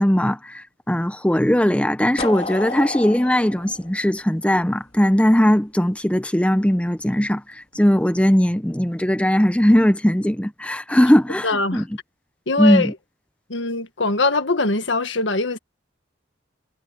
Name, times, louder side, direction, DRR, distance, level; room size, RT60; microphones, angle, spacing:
voice 1, 0.0-11.8 12.6-12.9, equal, 5° left, 0.7 m, -19 dB
sound 1, 2.2-5.0, left 3 dB, 35° left, 3.2 m, -31 dB
voice 2, 11.4-11.9 12.5-12.9 13.5-15.6, left 3 dB, 80° left, 1.7 m, -22 dB
head